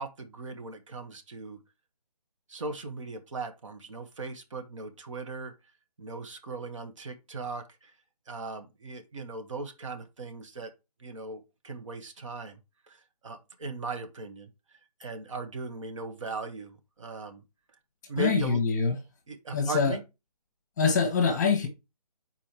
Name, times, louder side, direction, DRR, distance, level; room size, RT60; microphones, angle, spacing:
voice 1, 0.0-1.6 2.5-5.5 6.0-7.9 8.3-10.7 11.0-12.6 12.9-14.5 15.0-17.4 18.1-18.6 19.3-20.0, right 3 dB, 50° right, 1.4 m, -38 dB
voice 2, 18.2-19.0 19.5-20.0 20.8-21.7, left 5 dB, 25° left, 1.2 m, -24 dB
5.1 x 4.5 x 4.5 m
hypercardioid pair, 165°, 20 cm